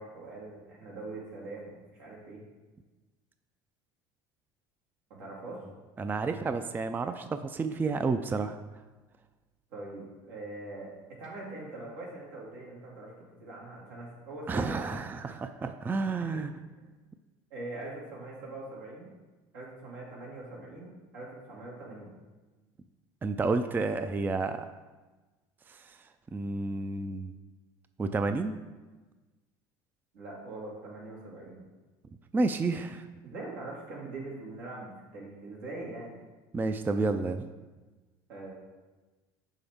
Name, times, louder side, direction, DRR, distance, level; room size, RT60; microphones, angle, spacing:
voice 1, 0.0-2.4 5.2-5.6 9.7-13.1 13.4-15.0 16.2-16.4 17.5-19.1 19.5-22.1 30.1-31.6 33.2-36.2 38.3-38.5, right 2 dB, 85° right, -4 dB, 2.0 m, -42 dB
voice 2, 6.0-8.6 14.5-16.5 23.2-24.7 25.7-26.0 26.3-27.3 28.0-28.5 32.3-33.1 36.5-37.5, right 3 dB, 15° right, 9 dB, 0.3 m, -30 dB
6.0 x 5.5 x 3.5 m, 1.2 s
supercardioid pair, 85°, 12 cm